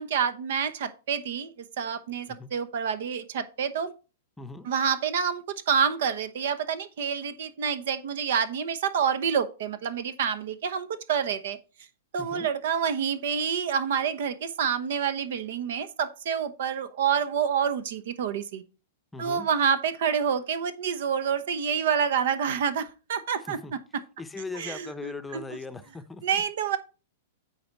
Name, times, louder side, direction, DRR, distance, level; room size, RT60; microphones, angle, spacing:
voice 1, 0.0-3.9 4.6-11.6 12.1-18.6 19.2-23.6 24.5-25.4 26.2-26.8, right 7 dB, 65° right, 12 dB, 0.9 m, -28 dB
voice 2, 4.4-4.7 12.2-12.5 19.1-19.5 23.4-23.7 24.2-26.4, left 3 dB, 10° left, 10 dB, 0.7 m, -39 dB
8.7 x 4.1 x 4.6 m, 0.33 s
hypercardioid pair, 120°, 0 cm